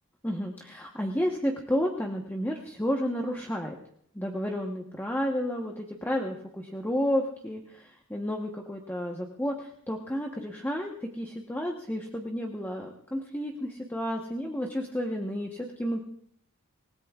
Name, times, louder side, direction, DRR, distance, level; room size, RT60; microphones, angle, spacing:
voice 1, 0.2-3.8 4.1-16.0, equal, 10° left, 0 dB, 1.1 m, -31 dB
27.5 x 17.5 x 2.4 m, 0.65 s
head